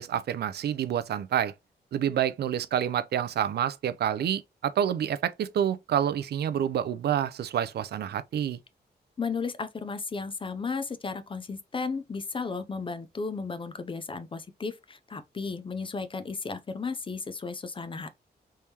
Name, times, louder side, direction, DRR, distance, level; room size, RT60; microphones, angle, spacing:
voice 1, 0.0-1.5 1.9-8.6, right 9 dB, 70° right, 0.4 m, -28 dB
voice 2, 9.2-18.1, left 4 dB, 30° left, 0.4 m, -34 dB
3.5 x 3.1 x 2.8 m
wide cardioid pair, 110°, 17 cm